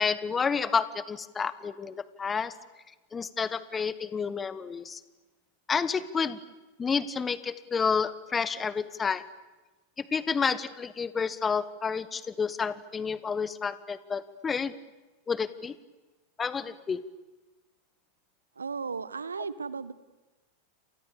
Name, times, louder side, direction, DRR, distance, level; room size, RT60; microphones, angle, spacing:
voice 1, 0.0-2.6 3.1-5.0 5.7-6.4 6.8-9.3 10.0-14.7 15.3-15.8 16.4-17.0, left 5 dB, 15° left, 17 dB, 1.2 m, -30 dB
voice 2, 18.6-19.9, right 5 dB, 75° right, 18 dB, 1.1 m, -35 dB
30.0 x 27.5 x 7.1 m, 1.1 s
figure-of-eight pair, 90°, 0 cm